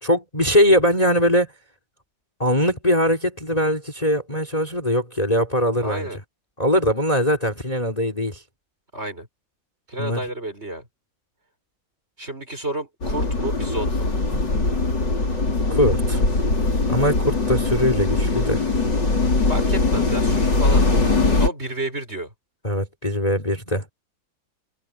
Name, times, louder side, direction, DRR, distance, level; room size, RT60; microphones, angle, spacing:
voice 1, 0.0-1.5 2.4-6.1 6.6-8.4 10.0-10.2 15.7-16.2 16.9-18.6 22.6-23.9, equal, 20° left, 3.6 m, -21 dB
voice 2, 5.8-6.2 8.9-9.3 9.9-10.9 12.2-14.1 19.5-20.8 21.4-22.3, right 1 dB, 30° right, 6.5 m, -30 dB
sound 1, 13.0-21.5, left 3 dB, 65° left, 6.1 m, -21 dB
omnidirectional pair, 2.1 m